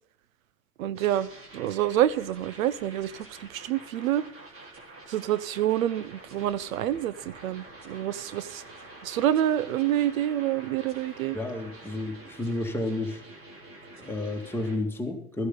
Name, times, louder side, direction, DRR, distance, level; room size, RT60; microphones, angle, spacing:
voice 1, 0.8-1.3 1.5-4.2 5.1-8.6 9.0-11.4, right 12 dB, 75° right, 0.8 m, -27 dB
sound 1, 1.0-14.8, right 2 dB, 30° right, 3.6 m, -47 dB
voice 2, 11.3-13.2 14.0-15.5, left 2 dB, 5° left, 2.1 m, -31 dB
14.0 x 11.0 x 3.9 m
hypercardioid pair, 100°, 41 cm